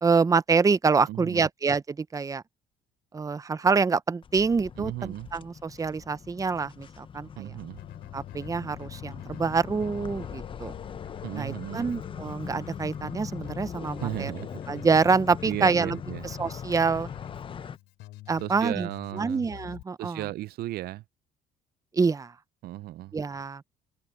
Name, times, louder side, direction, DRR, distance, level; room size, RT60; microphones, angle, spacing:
voice 1, 0.0-2.4 3.1-7.5 8.1-10.7 11.3-14.3 14.7-17.1 18.3-18.9 19.2-20.2 21.9-22.3 23.1-23.6, right 5 dB, 20° right, 0.7 m, -26 dB
voice 2, 1.1-1.5 4.8-5.3 7.4-7.8 11.2-12.0 14.0-14.6 15.5-16.3 18.4-19.5 20.0-21.0 22.6-23.1, right 16 dB, 65° right, 0.5 m, -35 dB
sound 1, 4.2-17.8, left 7 dB, 30° left, 0.6 m, -41 dB
Keyboard (musical), 7.8-19.8, left 17 dB, 85° left, 5.9 m, -46 dB
cardioid pair, 110°, 17 cm